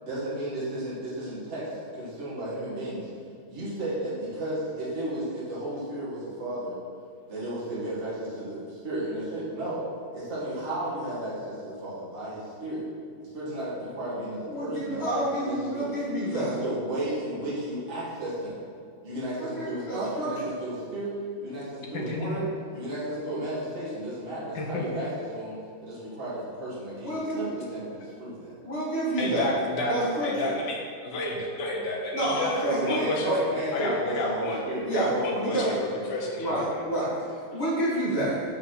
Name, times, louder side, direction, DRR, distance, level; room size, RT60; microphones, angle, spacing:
voice 1, 0.1-1.7 2.0-3.1 3.5-6.8 7.3-12.9 13.2-15.9 16.3-18.6 19.0-22.5 22.7-25.5 25.8-28.5 32.6-36.0, right 1 dB, 35° right, -9 dB, 2.2 m, -33 dB
voice 2, 14.4-16.5 19.4-20.5 27.0-27.4 28.6-29.5 29.9-30.5 32.1-33.4 33.7-33.9 34.8-35.8 36.4-38.4, right 1 dB, 30° left, -8 dB, 2.4 m, -29 dB
voice 3, 21.9-22.5 24.6-24.9 29.2-34.6 34.9-36.7, left 2 dB, 60° left, -1 dB, 1.7 m, -31 dB
6.2 x 5.5 x 5.7 m, 2.3 s
omnidirectional pair, 2.3 m